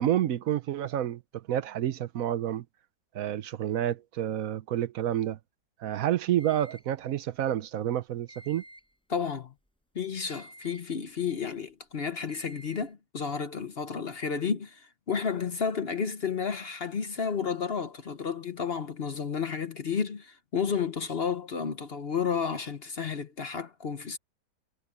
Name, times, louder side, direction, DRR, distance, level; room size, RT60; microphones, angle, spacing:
voice 1, 0.0-2.7 3.1-5.4 5.8-8.6, right 11 dB, 60° right, 1.0 m, -29 dB
sound 1, 6.4-7.0 8.3-9.0 10.3-11.0 12.3-12.9, right 1 dB, 5° left, 5.2 m, -51 dB
voice 2, 9.1-9.5 9.9-24.2, left 6 dB, 45° left, 1.0 m, -32 dB
omnidirectional pair, 1.8 m